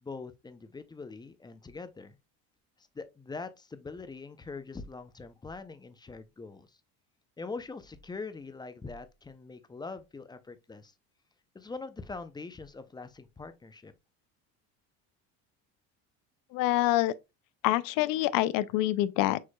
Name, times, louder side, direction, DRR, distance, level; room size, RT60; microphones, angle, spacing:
voice 1, 0.0-2.2 2.8-6.8 7.4-10.9 11.5-13.9, left 4 dB, 10° left, 0.5 m, -43 dB
voice 2, 16.5-17.1 17.6-19.4, left 16 dB, 70° left, 0.5 m, -26 dB
6.4 x 3.0 x 2.2 m
cardioid pair, 115°, 35 cm